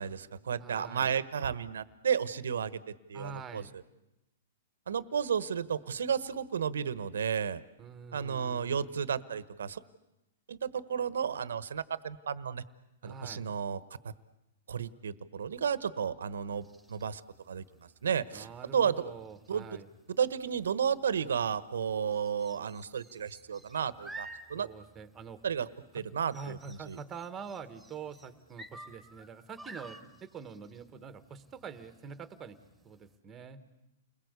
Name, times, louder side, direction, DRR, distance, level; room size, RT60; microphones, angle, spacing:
voice 1, 0.0-2.7 3.1-3.6 4.9-7.6 8.1-9.8 10.5-12.6 13.0-13.8 14.7-17.2 17.5-17.6 18.0-18.5 18.7-19.1 19.5-19.7 20.2-24.7 25.4-25.7 25.9-27.0, right 7 dB, 90° right, 16 dB, 1.2 m, -32 dB
voice 2, 0.6-1.1 3.1-3.7 7.8-8.9 13.0-13.4 18.3-19.9 24.5-25.4 25.9-26.0 26.3-32.6 32.8-33.6, right 6 dB, 15° right, 11 dB, 1.7 m, -45 dB
sound 1, 16.5-33.2, right 2 dB, ahead, 2.8 m, -53 dB
30.0 x 21.5 x 8.3 m, 0.94 s
hypercardioid pair, 155°, 0 cm